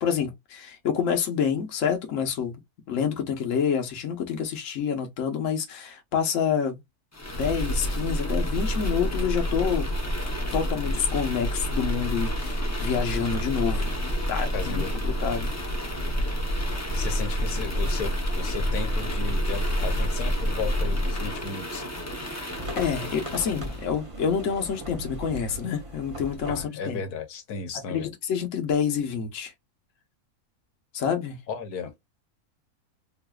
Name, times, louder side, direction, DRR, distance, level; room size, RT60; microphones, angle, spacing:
voice 1, 0.0-2.5 2.9-6.8 7.3-9.9 10.5-13.9 14.3-15.5 22.8-27.0 27.9-29.5 30.9-31.4, left 7 dB, 60° left, 1.2 m, -27 dB
sound 1, 7.1-23.8, equal, 20° left, 0.4 m, -28 dB
voice 2, 14.5-14.9 16.9-21.8 26.5-28.1 31.5-31.9, left 5 dB, 85° left, 1.3 m, -35 dB
sound 2, 22.5-26.6, right 1 dB, 25° right, 0.8 m, -38 dB
3.9 x 2.5 x 2.3 m
omnidirectional pair, 1.6 m